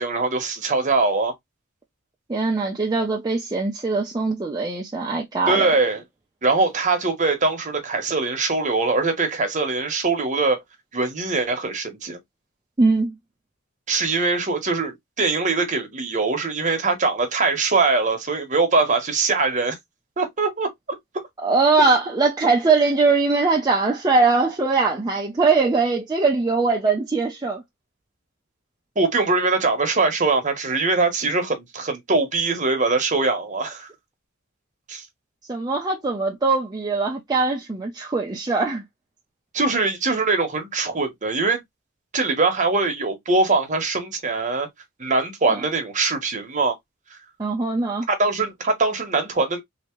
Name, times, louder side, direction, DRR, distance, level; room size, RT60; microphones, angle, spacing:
voice 1, 0.0-1.3 5.5-6.0 6.4-10.6 10.9-12.2 13.9-19.8 20.2-20.7 28.9-33.9 34.9-35.0 39.5-41.6 42.1-44.7 45.0-46.8 48.1-49.6, right 3 dB, 35° right, 1.1 m, -22 dB
voice 2, 2.3-5.7 12.8-13.2 21.4-27.6 35.5-38.8 45.5-45.6 47.4-48.1, right 3 dB, 20° right, 0.5 m, -21 dB
3.3 x 2.8 x 3.0 m
head